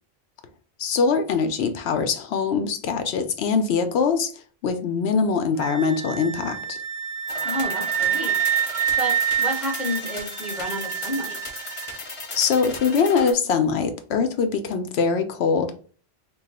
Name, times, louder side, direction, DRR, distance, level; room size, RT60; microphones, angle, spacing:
voice 1, 0.8-4.3 4.6-6.8 12.3-15.7, left 5 dB, 80° left, 0.8 m, -23 dB
Wind instrument woodwind instrument, 5.6-12.0, right 9 dB, 80° right, 0.9 m, -27 dB
sound 1, 7.3-13.3, left 3 dB, 35° left, 0.7 m, -36 dB
voice 2, 7.4-11.4, equal, ahead, 0.9 m, -31 dB
3.1 x 2.3 x 4.1 m
omnidirectional pair, 1.1 m